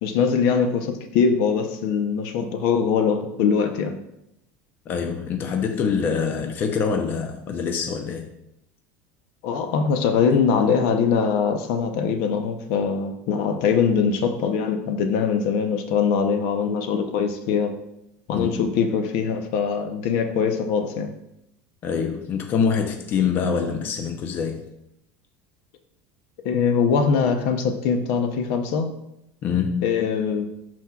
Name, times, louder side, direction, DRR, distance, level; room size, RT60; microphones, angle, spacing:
voice 1, 0.0-4.0 9.4-17.7 18.3-21.1 26.4-28.9 29.8-30.5, left 6 dB, 65° left, 7 dB, 0.8 m, -22 dB
voice 2, 4.9-8.3 18.3-18.5 21.8-24.6 29.4-29.9, left 6 dB, 35° left, 5 dB, 0.6 m, -25 dB
11.5 x 4.4 x 2.4 m, 0.84 s
supercardioid pair, 150°, 6 cm